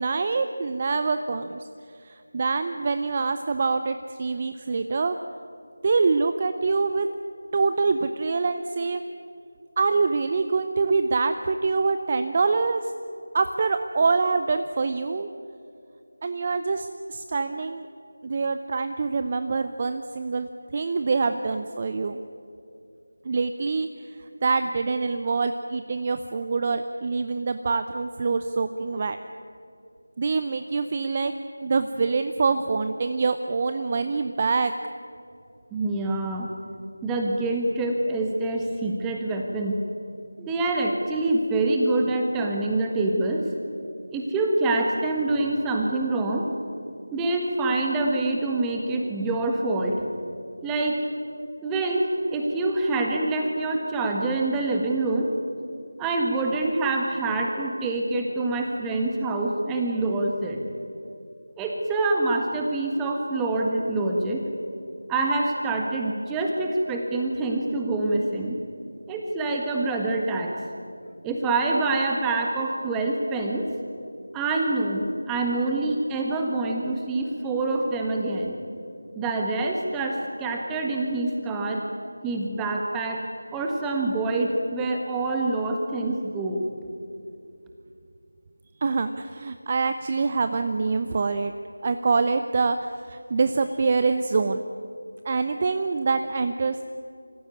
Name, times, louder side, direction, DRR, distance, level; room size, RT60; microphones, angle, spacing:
voice 1, 0.0-1.7 2.0-5.2 5.8-7.1 7.5-9.0 9.8-12.9 13.3-15.3 16.2-17.9 18.2-22.2 23.2-29.2 30.2-31.3 31.6-34.7 88.8-91.5 91.8-94.6 95.2-96.8, right 4 dB, 25° right, 9 dB, 0.6 m, -25 dB
voice 2, 35.7-36.5 37.0-39.8 40.4-43.4 44.1-46.5 47.1-50.0 50.6-51.0 51.6-55.3 56.0-60.6 61.6-64.4 65.1-68.6 69.1-70.5 71.2-73.7 74.3-78.5 79.1-81.8 82.2-83.2 83.5-86.7, right 2 dB, 5° right, 1 dB, 1.5 m, -26 dB
25.5 x 15.0 x 9.6 m, 2.6 s
figure-of-eight pair, 165°, 0 cm